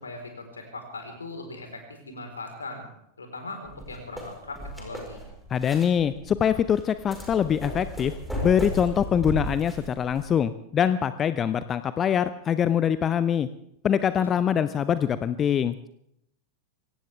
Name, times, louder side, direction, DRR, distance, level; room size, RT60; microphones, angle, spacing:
voice 1, 0.0-2.9 3.2-5.2 14.1-14.2, left 2 dB, 75° left, 4 dB, 4.2 m, -39 dB
sound 1, 3.7-10.3, equal, ahead, 4.7 m, -36 dB
voice 2, 5.5-8.1 8.4-13.5 13.8-15.9, left 8 dB, 25° left, 14 dB, 0.6 m, -24 dB
23.5 x 17.5 x 3.5 m, 0.76 s
figure-of-eight pair, 90°, 0 cm